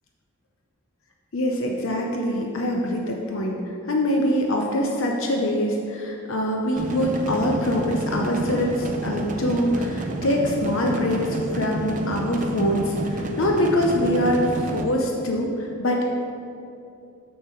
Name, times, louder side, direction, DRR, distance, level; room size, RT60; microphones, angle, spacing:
voice 1, 1.3-3.6 3.9-16.1, equal, 70° left, 0 dB, 0.7 m, -24 dB
sound 1, 6.8-14.8, right 1 dB, 35° right, 0.5 m, -30 dB
6.7 x 6.5 x 4.5 m, 2.7 s
head